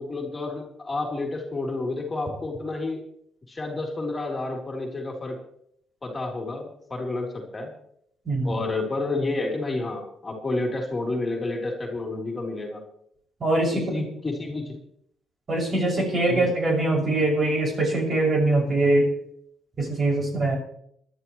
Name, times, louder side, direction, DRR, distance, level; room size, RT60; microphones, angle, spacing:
voice 1, 0.0-3.0 3.5-5.4 6.0-7.7 8.4-12.8 13.7-14.8 16.3-16.4, left 2 dB, 25° left, 0 dB, 3.6 m, -30 dB
voice 2, 8.2-8.6 13.4-13.8 15.5-19.1 19.8-20.6, right 2 dB, 40° right, -1 dB, 6.5 m, -22 dB
20.5 x 12.0 x 3.2 m, 0.70 s
cardioid pair, 90°, 0 cm